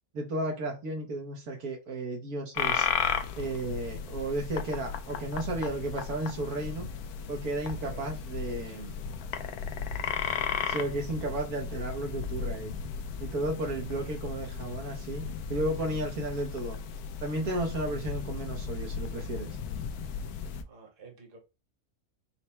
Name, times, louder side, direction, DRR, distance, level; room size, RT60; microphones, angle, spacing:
voice 1, 0.1-2.9 3.4-6.9 7.3-8.9 10.7-12.7 13.2-16.8 17.2-19.5, right 1 dB, 80° right, 1.5 m, -33 dB
sound 1, 2.5-20.6, left 7 dB, 80° left, 1.1 m, -35 dB
voice 2, 7.6-8.9 20.6-21.4, right 5 dB, 40° right, 1.2 m, -52 dB
4.3 x 2.2 x 4.2 m
omnidirectional pair, 1.5 m